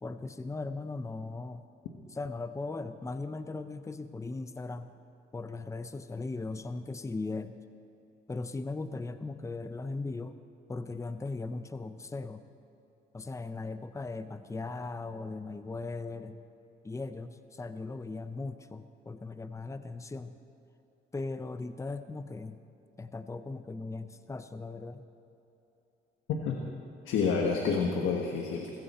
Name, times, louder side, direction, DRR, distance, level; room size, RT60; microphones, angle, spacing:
voice 1, 0.0-1.6 2.1-4.9 5.3-7.6 8.3-10.4 10.7-12.4 13.1-16.4 16.8-20.4 21.1-22.6 23.0-25.0, left 3 dB, 15° left, 11 dB, 0.7 m, -38 dB
voice 2, 26.3-26.6 27.0-28.7, left 5 dB, 85° left, 2 dB, 1.5 m, -29 dB
20.5 x 16.0 x 4.4 m, 3.0 s
cardioid pair, 90°, 20 cm